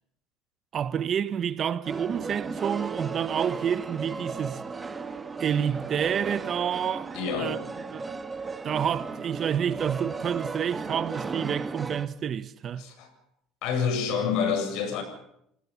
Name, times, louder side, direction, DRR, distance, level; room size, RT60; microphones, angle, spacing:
voice 1, 0.7-4.6 5.4-7.6 7.9-8.1 8.6-12.8, right 8 dB, 40° right, 1.0 m, -29 dB
sound 1, 1.8-12.1, right 4 dB, 20° right, 1.9 m, -35 dB
voice 2, 7.1-7.6 12.8-13.1 13.6-15.0, left 6 dB, 70° left, 7.8 m, -28 dB
28.5 x 19.0 x 7.1 m
cardioid pair, 115°, 0 cm